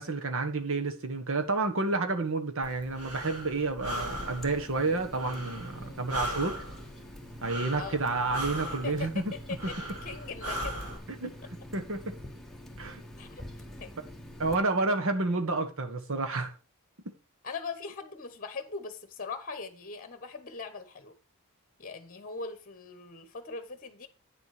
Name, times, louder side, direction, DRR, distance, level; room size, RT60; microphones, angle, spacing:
voice 1, 0.0-6.6 7.4-9.3 11.2-11.3 11.7-12.1 12.8-13.0 14.4-16.5, right 3 dB, 65° right, 1.5 m, -30 dB
Breathing, 2.6-11.0, equal, 85° right, 2.8 m, -39 dB
Water tap faucet, 3.8-14.5, equal, ahead, 1.4 m, -46 dB
voice 2, 8.7-10.9 13.2-13.3 13.8-13.9 17.4-21.1 21.8-24.1, left 4 dB, 40° left, 1.2 m, -40 dB
9.5 x 7.0 x 4.9 m
head